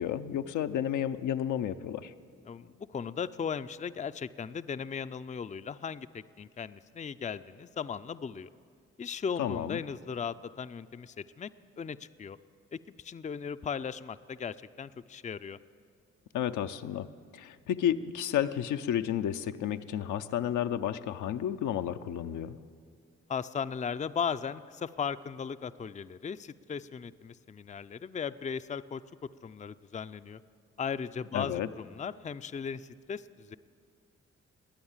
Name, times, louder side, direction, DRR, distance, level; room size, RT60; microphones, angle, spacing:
voice 1, 0.0-2.1 9.4-9.8 16.3-17.1 17.3-22.6 31.3-31.7, left 10 dB, 75° left, 8 dB, 0.7 m, -31 dB
voice 2, 2.5-8.5 9.0-11.5 11.8-12.4 12.7-15.6 23.3-29.0 29.4-30.4 30.8-33.6, left 6 dB, 25° left, 12 dB, 0.5 m, -37 dB
20.5 x 9.3 x 7.3 m, 2.1 s
supercardioid pair, 50°, 31 cm